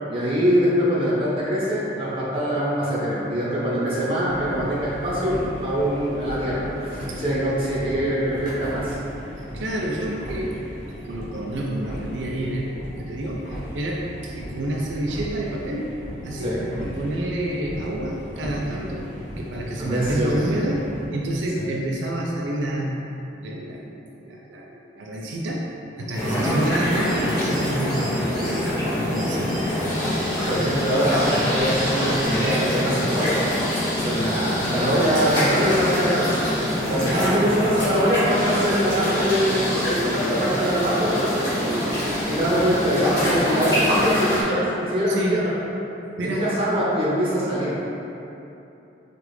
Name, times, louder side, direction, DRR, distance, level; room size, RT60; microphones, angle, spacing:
voice 1, 0.0-9.0 16.4-16.6 19.8-20.4 21.6-21.7 26.2-26.6 30.4-33.4 34.0-36.4 36.9-45.5 46.2-47.7, equal, 30° right, -9 dB, 0.9 m, -23 dB
sound 1, 4.2-21.1, equal, 40° left, 0.8 m, -36 dB
voice 2, 9.4-10.6 10.9-16.0 16.2-19.1 19.4-22.9 23.4-23.9 24.2-25.7 26.0-28.7 29.0-29.6 37.1-37.4 45.1-45.5 46.2-46.5, right 1 dB, 90° right, -2 dB, 0.4 m, -28 dB
sound 2, 26.1-44.4, left 1 dB, 20° left, 1.3 m, -25 dB
sound 3, 26.9-28.7 29.1-32.4, right 1 dB, ahead, 1.1 m, -41 dB
4.7 x 2.5 x 3.2 m, 2.9 s
head